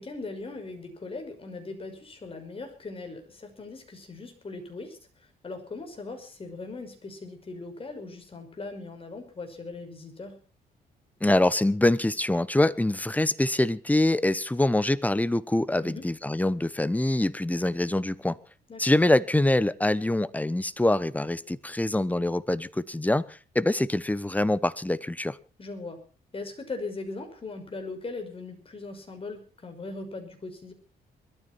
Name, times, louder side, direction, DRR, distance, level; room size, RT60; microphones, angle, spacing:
voice 1, 0.0-5.0 5.4-10.4 15.8-16.1 18.7-18.8 25.6-26.0 26.3-30.7, left 3 dB, 35° left, 5.8 m, -39 dB
voice 2, 11.2-18.4 18.8-25.4, left 1 dB, 10° left, 0.9 m, -24 dB
21.5 x 13.5 x 4.4 m
cardioid pair, 95°, 17 cm